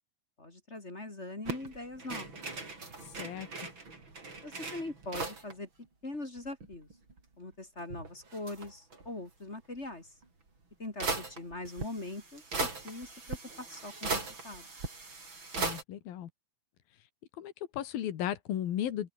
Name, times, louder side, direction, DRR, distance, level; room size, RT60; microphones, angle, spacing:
voice 1, 0.4-2.4 4.4-5.7 6.0-6.9 7.4-10.1 10.8-14.7, left 2 dB, 20° left, 2.7 m, -42 dB
sound 1, 1.5-5.5 5.8-5.9 6.1-7.2 7.8-9.1 10.2-10.3 11.0-15.8, right 3 dB, 30° right, 5.8 m, -39 dB
voice 2, 3.0-3.5 15.6-16.3 17.4-19.1, left 11 dB, 85° left, 3.7 m, -35 dB
open air
omnidirectional pair, 4.1 m